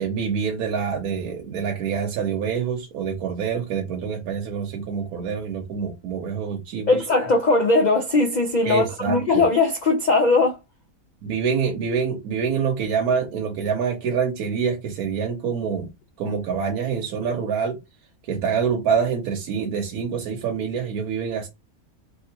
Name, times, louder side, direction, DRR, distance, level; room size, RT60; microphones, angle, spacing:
voice 1, 0.0-7.0 8.6-9.4 11.2-15.9 16.2-17.8 18.3-21.5, right 6 dB, 90° right, 1.2 m, -26 dB
voice 2, 6.9-10.6, left 3 dB, 80° left, 0.4 m, -19 dB
3.1 x 2.8 x 2.8 m
omnidirectional pair, 1.5 m